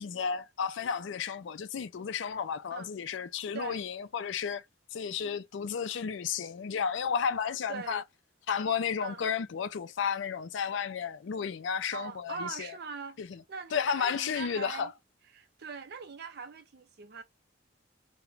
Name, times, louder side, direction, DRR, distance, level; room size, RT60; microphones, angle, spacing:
voice 1, 0.0-4.6 4.9-8.0 8.5-12.7 13.2-13.4 13.7-14.9, left 6 dB, 65° left, 0.4 m, -32 dB
voice 2, 7.7-8.0 9.0-9.3 11.9-14.9 15.3-17.2, right 5 dB, 50° right, 0.4 m, -42 dB
2.4 x 2.1 x 3.0 m
head